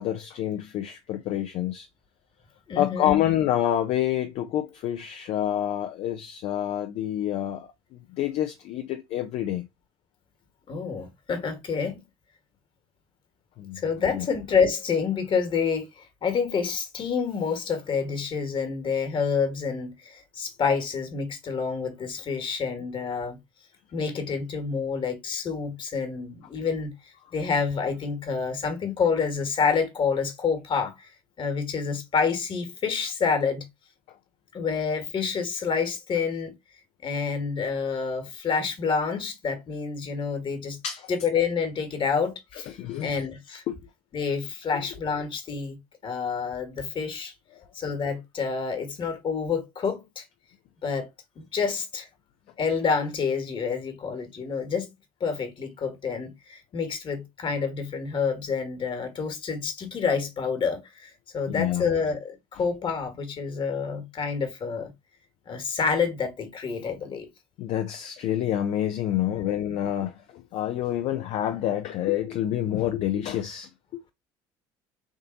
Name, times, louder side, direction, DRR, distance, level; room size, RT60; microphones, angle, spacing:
voice 1, 0.0-1.9 2.7-9.7 13.6-13.8 14.1-14.3 40.8-41.1 42.7-43.2 43.7-43.8 44.7-44.8 47.6-47.7 61.5-61.9 67.6-74.0, left 11 dB, 60° left, 0.5 m, -28 dB
voice 2, 2.7-3.3 10.7-12.1 13.8-23.4 23.9-26.9 27.3-31.1 31.4-33.7 34.5-36.5 37.0-40.8 41.1-43.6 44.1-47.3 47.7-50.2 50.8-51.1 51.3-52.1 52.6-54.9 55.2-64.9 65.5-67.3 69.3-69.6, left 5 dB, 45° left, 1.5 m, -28 dB
3.6 x 2.7 x 3.8 m
hypercardioid pair, 70°, 12 cm